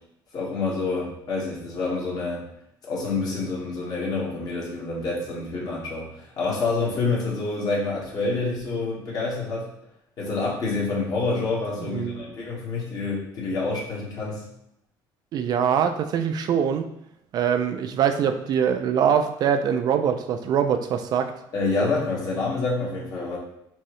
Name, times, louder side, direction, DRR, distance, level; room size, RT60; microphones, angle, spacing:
voice 1, 0.3-2.4 2.8-9.7 10.2-14.4 21.5-23.4, left 3 dB, 50° left, -4 dB, 1.5 m, -27 dB
voice 2, 11.9-12.2 15.3-16.8 17.3-21.3, right 8 dB, 50° right, 7 dB, 0.3 m, -23 dB
4.6 x 3.1 x 3.1 m, 0.75 s
cardioid pair, 135°, 9 cm